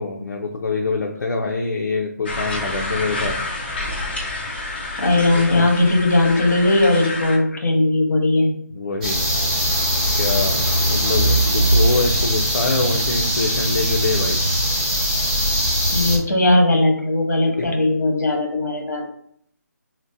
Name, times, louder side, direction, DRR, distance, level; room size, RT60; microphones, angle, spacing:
voice 1, 0.0-3.4 5.3-5.7 8.7-9.2 10.1-14.4 17.6-17.7, left 3 dB, 80° left, 0 dB, 0.5 m, -25 dB
sound 1, 2.3-7.4, left 2 dB, 35° left, 0.7 m, -28 dB
voice 2, 5.0-8.5 15.9-19.0, left 2 dB, 65° left, 1 dB, 1.0 m, -18 dB
sound 2, 9.0-16.2, equal, 25° right, 1.0 m, -20 dB
3.8 x 2.1 x 2.6 m, 0.67 s
hypercardioid pair, 175°, 10 cm